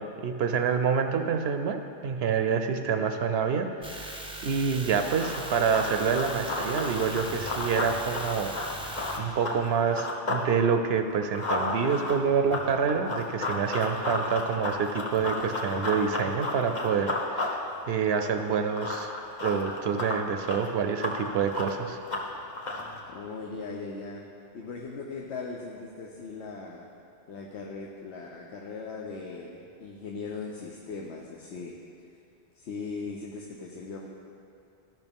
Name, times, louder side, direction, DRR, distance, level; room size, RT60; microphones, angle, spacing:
voice 1, 0.0-8.5 8.8-19.1 19.4-22.0, right 6 dB, 70° right, 6 dB, 0.8 m, -27 dB
sound 1, 3.8-9.2, right 2 dB, 5° right, 0.7 m, -40 dB
Run, 5.0-10.5 10.8-23.0, left 2 dB, 45° left, 1.1 m, -33 dB
voice 2, 22.6-24.3 24.5-26.9 27.3-31.8 32.5-34.1, left 4 dB, 80° left, -1 dB, 1.0 m, -39 dB
13.5 x 5.8 x 3.5 m, 2.6 s
omnidirectional pair, 1.1 m